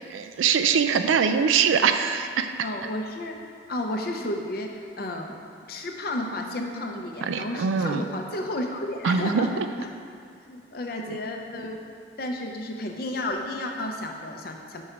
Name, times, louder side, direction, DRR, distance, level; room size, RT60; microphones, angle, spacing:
voice 1, 0.1-2.5 7.2-8.0 9.0-9.6 11.1-11.2, right 6 dB, 85° right, 8 dB, 0.4 m, -23 dB
voice 2, 2.6-3.4 3.7-5.4 5.7-9.5 9.8-9.9 10.4-11.8 12.2-14.8, left 1 dB, 50° left, 2 dB, 0.5 m, -32 dB
5.4 x 4.4 x 4.9 m, 2.2 s
head